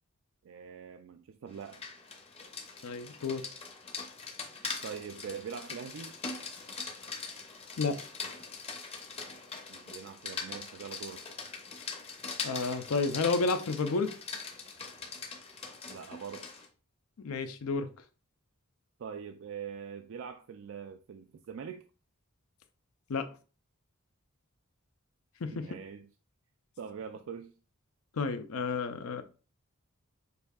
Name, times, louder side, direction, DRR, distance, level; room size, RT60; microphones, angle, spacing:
voice 1, 0.4-1.8 4.8-6.1 9.7-11.2 15.9-16.5 19.0-21.9 25.5-26.1 26.8-27.5, right 7 dB, 65° right, 7 dB, 0.3 m, -43 dB
Rain, 1.5-16.7, left 4 dB, 30° left, 0.7 m, -42 dB
voice 2, 2.8-3.4 7.8-8.0 12.4-14.1 17.2-17.9 23.1-23.3 25.4-25.6 28.1-29.2, left 4 dB, 85° left, 9 dB, 0.5 m, -31 dB
6.7 x 2.7 x 2.3 m, 0.35 s
head